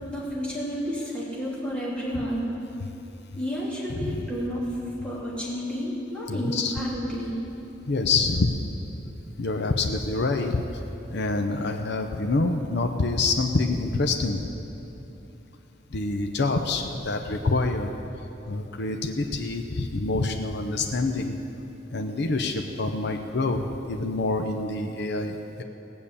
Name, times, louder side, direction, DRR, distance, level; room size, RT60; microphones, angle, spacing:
voice 1, 0.1-2.5 3.4-7.4, equal, 5° left, -7 dB, 3.2 m, -31 dB
voice 2, 6.3-6.7 7.9-8.5 9.4-10.8 11.1-14.5 15.9-17.9 18.5-21.4 21.9-25.6, left 3 dB, 60° left, 4 dB, 0.7 m, -26 dB
17.5 x 7.1 x 8.4 m, 2.9 s
head